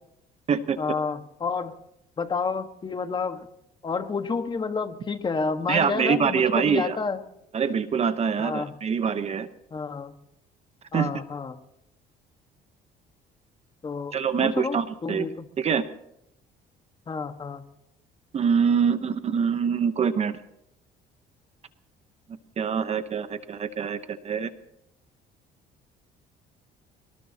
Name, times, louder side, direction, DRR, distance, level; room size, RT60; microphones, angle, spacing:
voice 1, 0.8-1.8 2.2-3.5 3.8-7.2 8.4-8.7 9.7-10.1 10.9-11.6 13.8-15.5 17.1-17.6, left 4 dB, 25° left, 7 dB, 1.6 m, -30 dB
voice 2, 5.7-7.0 7.5-9.5 10.9-11.1 14.1-15.3 15.6-15.8 18.3-20.4 22.6-24.5, right 6 dB, 40° right, 11 dB, 1.0 m, -24 dB
23.5 x 19.5 x 2.9 m, 0.79 s
cardioid pair, 110°, 17 cm